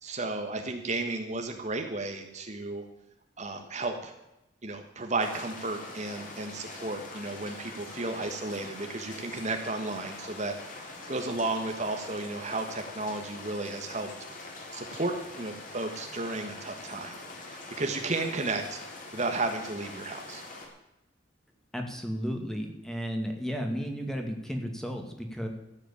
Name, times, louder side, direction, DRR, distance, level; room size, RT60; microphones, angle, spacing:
voice 1, 0.0-2.8 3.4-4.1 4.6-14.1 14.7-17.2 17.4-18.8 19.1-20.4, right 2 dB, 40° right, 5 dB, 1.4 m, -33 dB
sound 1, 5.2-20.7, left 2 dB, 45° left, 3.5 m, -44 dB
voice 2, 21.7-25.5, equal, 5° left, 3 dB, 2.1 m, -33 dB
14.0 x 8.3 x 8.7 m, 0.90 s
head